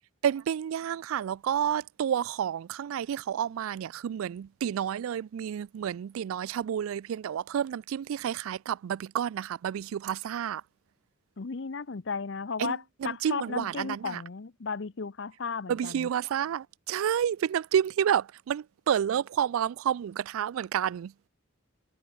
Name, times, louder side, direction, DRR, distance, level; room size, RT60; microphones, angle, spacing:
voice 1, 0.2-10.6 12.6-14.2 15.7-21.1, right 9 dB, 80° right, 0.3 m, -30 dB
voice 2, 11.4-16.1, left 5 dB, 60° left, 0.6 m, -35 dB
head